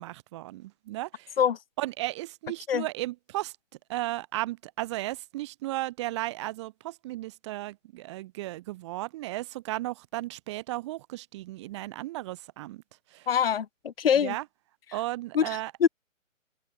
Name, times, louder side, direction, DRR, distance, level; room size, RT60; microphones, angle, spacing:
voice 1, 0.0-1.4 1.8-3.5 3.9-12.8 13.1-13.3 14.2-14.4 14.9-15.7, right 17 dB, 20° right, 4.7 m, -35 dB
voice 2, 13.3-14.3 15.3-15.9, left 8 dB, 45° left, 1.3 m, -24 dB
open air
hypercardioid pair, 170°, 39 cm